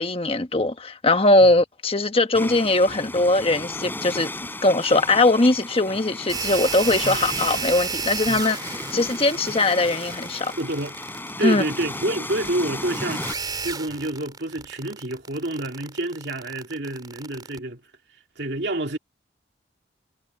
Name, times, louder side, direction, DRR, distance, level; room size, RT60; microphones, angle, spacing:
voice 1, 0.0-4.3 4.6-10.5 11.4-11.6, left 2 dB, 30° left, 1.2 m, -20 dB
sound 1, 2.3-13.3, left 2 dB, 10° left, 6.0 m, -35 dB
sound 2, 6.3-17.6, right 5 dB, 25° right, 3.7 m, -32 dB
voice 2, 10.6-10.9 11.4-13.3 13.6-17.8 18.4-19.0, right 1 dB, 70° right, 2.6 m, -28 dB
head